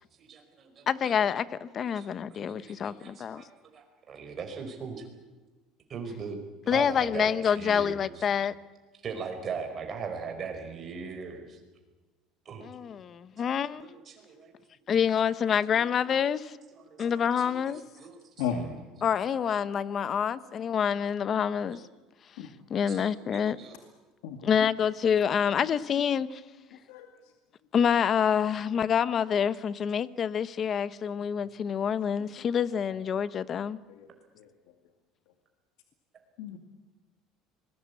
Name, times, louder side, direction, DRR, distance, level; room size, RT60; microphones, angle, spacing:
voice 1, 0.2-1.1 1.9-2.4 2.7-5.1 5.9-6.4 6.7-8.2 9.0-11.6 12.4-12.7 13.7-14.5 15.7-15.9 16.7-17.1 17.4-18.2 18.5-18.7 21.6-21.8 22.9-23.8, right 5 dB, 30° right, 4 dB, 4.9 m, -40 dB
voice 2, 0.9-3.4 6.7-8.5 12.6-13.9 14.9-16.6 17.0-17.8 19.0-21.8 22.7-23.6 24.4-26.4 27.7-33.8, left 8 dB, 30° left, 16 dB, 0.9 m, -27 dB
voice 3, 24.2-24.7 26.7-27.3 31.3-31.5 31.8-31.9 32.2-32.3 32.8-33.0 33.9-34.1 34.3-34.7 36.4-36.6, left 7 dB, 90° left, 5 dB, 2.3 m, -37 dB
26.0 x 21.5 x 8.4 m, 1.2 s
cardioid pair, 155°, 0 cm